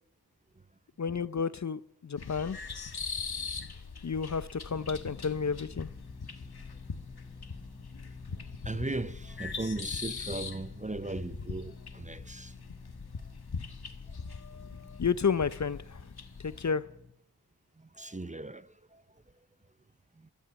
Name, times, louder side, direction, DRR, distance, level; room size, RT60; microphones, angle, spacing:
voice 1, 1.0-2.6 4.0-5.9 14.3-16.1 16.4-16.9, left 6 dB, 45° left, 0.6 m, -32 dB
sound 1, 2.2-16.7, left 5 dB, 65° left, 1.4 m, -41 dB
sound 2, 4.7-17.1, left 3 dB, 5° left, 1.7 m, -51 dB
voice 2, 8.6-12.5 17.8-19.0 20.2-20.3, right 2 dB, 20° right, 0.6 m, -38 dB
14.0 x 12.5 x 8.2 m
wide cardioid pair, 80°, 40 cm